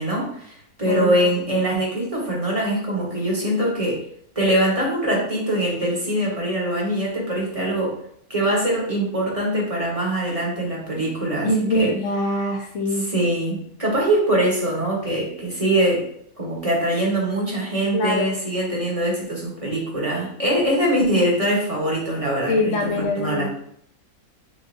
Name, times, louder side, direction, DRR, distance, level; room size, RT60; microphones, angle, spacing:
voice 1, 0.0-4.0 4.3-8.0 8.3-11.9 12.9-16.0 16.4-23.5, right 1 dB, 25° right, -4 dB, 1.0 m, -23 dB
voice 2, 0.9-1.3 11.4-13.1 17.9-18.2 22.5-23.5, left 1 dB, 55° left, 0 dB, 1.1 m, -23 dB
6.3 x 2.6 x 2.6 m, 0.68 s
omnidirectional pair, 1.5 m